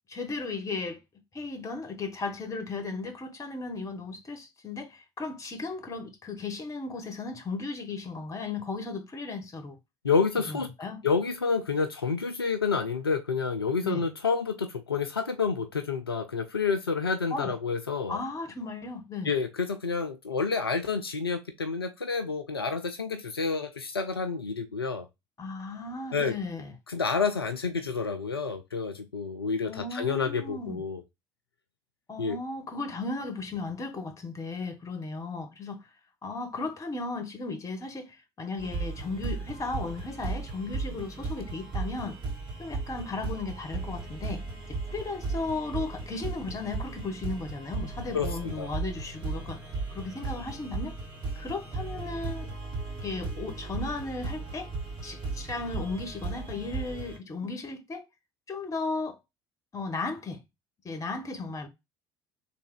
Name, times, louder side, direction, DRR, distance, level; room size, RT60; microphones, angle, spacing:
voice 1, 0.1-1.0 1.3-9.8 10.5-11.0 13.8-14.0 17.3-17.5 18.1-19.3 25.4-26.7 29.7-30.8 32.1-35.8 36.2-42.2 42.6-44.5 44.9-49.6 49.9-50.9 51.4-52.5 53.0-54.7 55.0-58.0 58.5-59.2 59.7-60.4 60.8-61.7, left 3 dB, 25° left, 1.2 m, -35 dB
voice 2, 10.0-10.7 11.0-18.2 19.2-25.1 26.1-26.3 26.9-31.0 32.2-32.4 48.1-48.7, left 5 dB, 85° left, 0.4 m, -29 dB
sound 1, 38.6-57.2, right 3 dB, 35° right, 2.4 m, -36 dB
3.5 x 2.8 x 4.7 m
figure-of-eight pair, 60°, 12 cm